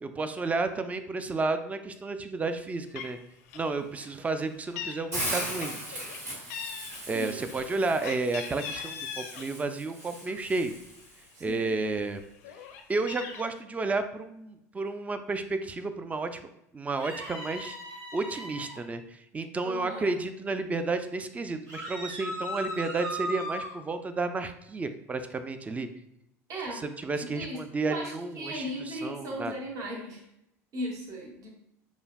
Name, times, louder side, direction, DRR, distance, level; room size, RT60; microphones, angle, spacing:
voice 1, 0.0-3.2 3.5-6.0 7.1-10.7 11.4-12.2 12.9-16.4 16.7-17.8 18.1-25.9 26.7-29.5, right 3 dB, 15° right, 9 dB, 0.3 m, -32 dB
Meow, 2.6-2.7 2.9-3.2 3.5-3.7 4.0-5.0 5.3-6.2 6.5-9.5 9.9-11.0 11.5-11.6 11.9-13.4, left 7 dB, 70° left, 0.4 m, -40 dB
Hiss, 5.1-11.2, equal, 85° right, 1.4 m, -38 dB
voice 2, 11.3-11.7 19.6-20.1 26.5-26.8 27.2-27.6 27.9-30.2 30.7-31.5, equal, 45° right, -1 dB, 1.0 m, -37 dB
sound 1, 17.0-18.8 21.7-23.7, equal, 65° right, 1.2 m, -37 dB
4.9 x 2.4 x 2.2 m, 0.82 s
hypercardioid pair, 80°, 8 cm